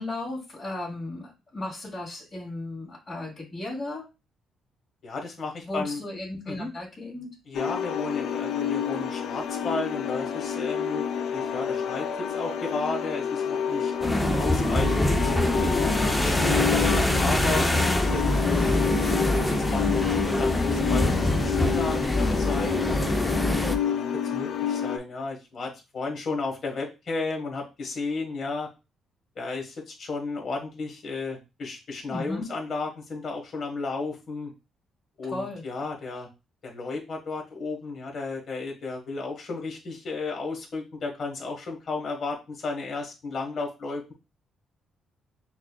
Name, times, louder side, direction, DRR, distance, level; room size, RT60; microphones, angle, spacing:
voice 1, 0.0-4.0 5.6-7.3 32.1-32.5 35.2-35.6, left 2 dB, 35° left, -7 dB, 1.9 m, -35 dB
voice 2, 5.0-6.0 6.5-6.7 7.5-13.9 14.4-15.1 15.6-17.7 18.1-18.9 19.2-23.1 23.8-28.7 29.3-34.5 35.2-36.3 36.6-44.1, left 3 dB, 50° left, 1 dB, 1.3 m, -33 dB
sound 1, 7.5-25.0, left 8 dB, 70° left, 0.3 m, -29 dB
sound 2, 14.0-23.8, left 1 dB, 5° left, 0.5 m, -24 dB
5.9 x 2.3 x 2.2 m, 0.27 s
cardioid pair, 90°, 0 cm